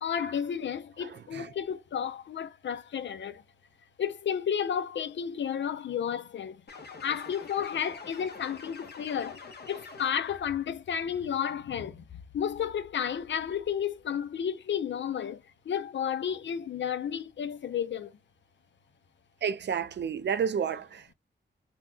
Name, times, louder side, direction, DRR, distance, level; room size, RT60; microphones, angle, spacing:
voice 1, 0.0-3.4 4.0-6.6 7.0-18.2, left 8 dB, 80° left, 0.6 m, -32 dB
sound 1, 6.7-10.5, left 4 dB, 60° left, 1.0 m, -46 dB
voice 2, 19.4-21.1, right 7 dB, 70° right, 0.5 m, -30 dB
3.9 x 2.2 x 2.7 m
wide cardioid pair, 95°, 19 cm